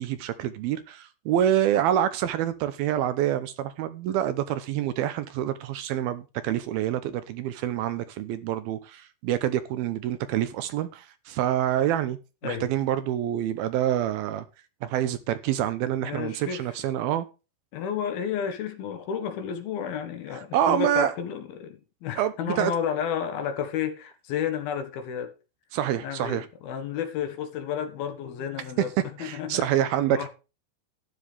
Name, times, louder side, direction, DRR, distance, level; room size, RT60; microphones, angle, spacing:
voice 1, 0.0-12.2 12.4-14.5 14.8-17.3 20.5-21.1 22.2-22.7 25.7-26.5 29.2-30.2, right 11 dB, 75° right, 2.5 m, -27 dB
voice 2, 16.0-16.7 17.7-25.3 26.0-28.9 29.2-29.7 30.1-30.3, left 8 dB, 70° left, 3.3 m, -31 dB
12.5 x 9.9 x 3.4 m
omnidirectional pair, 4.7 m